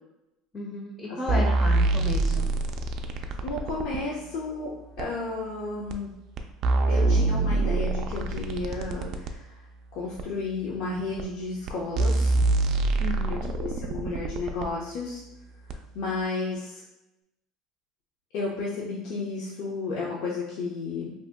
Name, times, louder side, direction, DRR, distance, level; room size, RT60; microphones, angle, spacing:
voice 1, 0.5-2.5 13.0-13.5, left 2 dB, 25° left, -1 dB, 0.5 m, -33 dB
voice 2, 1.1-1.4 3.4-6.1 6.9-9.5 9.9-12.3 13.3-15.2 15.9-16.8 18.3-21.1, left 3 dB, 70° left, -4 dB, 0.6 m, -33 dB
sound 1, 1.3-4.0 5.0-5.1 5.9-6.0 6.4-9.3 10.2-10.3 11.2-11.3 11.7-11.8 12.0-14.7 15.7-15.8, right 2 dB, 55° right, 0.3 m, -25 dB
2.7 x 2.1 x 3.5 m, 0.91 s
supercardioid pair, 95°, 0 cm